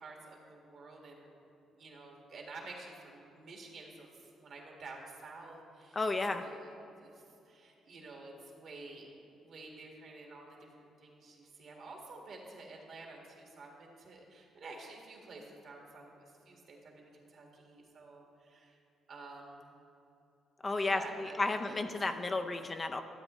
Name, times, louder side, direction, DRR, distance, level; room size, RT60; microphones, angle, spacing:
voice 1, 0.0-1.3 1.7-6.0 6.4-9.1 9.4-18.8 19.1-19.7 20.8-22.5, right 3 dB, 60° right, 0 dB, 1.8 m, -50 dB
voice 2, 5.9-6.4 20.6-23.0, left 3 dB, 30° left, 6 dB, 0.5 m, -33 dB
12.5 x 8.0 x 3.1 m, 2.8 s
cardioid pair, 90°, 0 cm